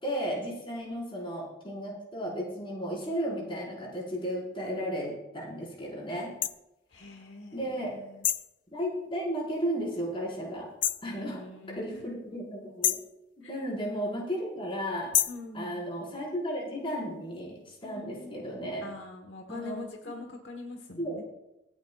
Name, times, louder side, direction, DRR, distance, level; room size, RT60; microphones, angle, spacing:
voice 1, 0.0-6.3 7.5-7.9 8.7-10.7 11.0-11.4 11.7-13.0 13.5-15.1 15.5-18.8 19.5-19.8 21.0-21.2, equal, 30° left, -5 dB, 4.8 m, -34 dB
sound 1, 6.4-6.6 8.2-8.5 10.8-11.1 12.8-13.1 15.1-15.4, left 12 dB, 45° left, 0.5 m, -27 dB
voice 2, 6.9-8.2 11.0-12.0 13.4-13.5 15.3-15.9 17.8-18.4 18.8-21.2, left 2 dB, 70° left, 3 dB, 1.3 m, -44 dB
25.5 x 8.7 x 2.4 m, 0.95 s
head